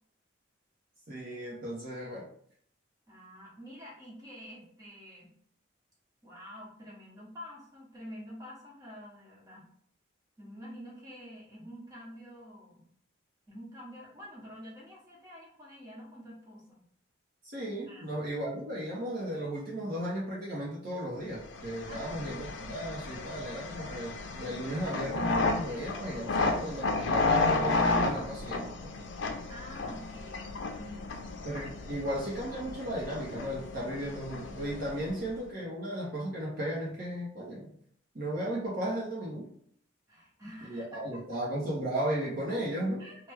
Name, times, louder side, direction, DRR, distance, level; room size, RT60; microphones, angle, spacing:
voice 1, 1.1-2.3 17.4-28.9 31.4-37.7 38.1-39.5 40.6-43.0, right 1 dB, 45° right, -5 dB, 0.7 m, -35 dB
voice 2, 3.1-5.3 6.2-9.7 10.4-12.9 13.5-16.8 17.9-18.1 21.9-22.5 29.5-31.5 35.1-35.3 40.1-41.2 43.0-43.3, equal, 20° right, -5 dB, 1.1 m, -48 dB
sound 1, 21.5-35.3, left 3 dB, 65° left, 0.5 m, -32 dB
3.2 x 2.2 x 3.3 m, 0.63 s
head